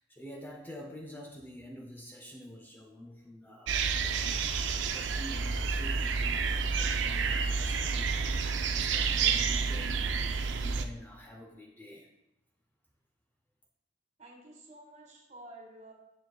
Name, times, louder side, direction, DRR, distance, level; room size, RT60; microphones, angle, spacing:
voice 1, 0.0-12.1, equal, 10° left, -1 dB, 0.6 m, -48 dB
sound 1, 3.7-10.8, right 5 dB, 75° right, 0.4 m, -29 dB
voice 2, 14.2-15.9, right 1 dB, 40° right, 0 dB, 1.6 m, -51 dB
7.8 x 7.2 x 2.3 m, 0.86 s
head